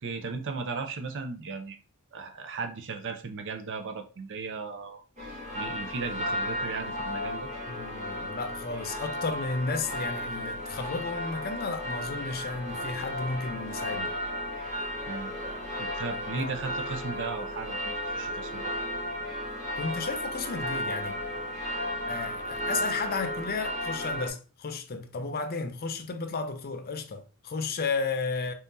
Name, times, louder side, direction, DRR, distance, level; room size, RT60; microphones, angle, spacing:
voice 1, 0.0-1.8 2.1-5.0 5.5-7.5 15.1-15.3 15.8-18.7, right 4 dB, 55° right, 0.6 m, -36 dB
sound 1, 5.2-24.3, equal, 35° right, 1.9 m, -34 dB
voice 2, 7.7-14.2 16.3-16.5 19.7-21.2 22.1-28.5, left 4 dB, 45° left, 0.5 m, -33 dB
4.1 x 3.7 x 2.6 m
head